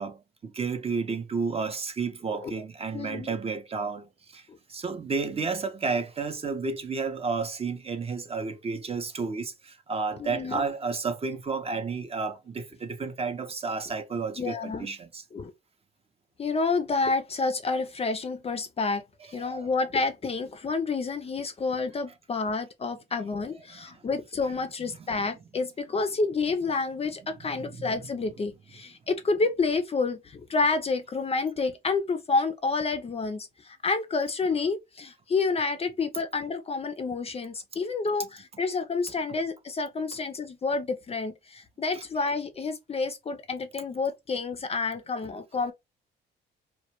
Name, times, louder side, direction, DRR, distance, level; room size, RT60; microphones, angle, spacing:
voice 1, 0.0-15.2 19.4-19.7 23.7-24.1 27.5-28.0 41.9-42.0, right 4 dB, 30° right, 0.5 m, -32 dB
voice 2, 2.9-3.3 4.5-4.6 10.2-10.6 14.4-14.9 15.3-15.5 16.4-19.0 19.3-45.7, left 4 dB, 30° left, 0.4 m, -29 dB
2.1 x 2.1 x 2.9 m
cardioid pair, 90°, 20 cm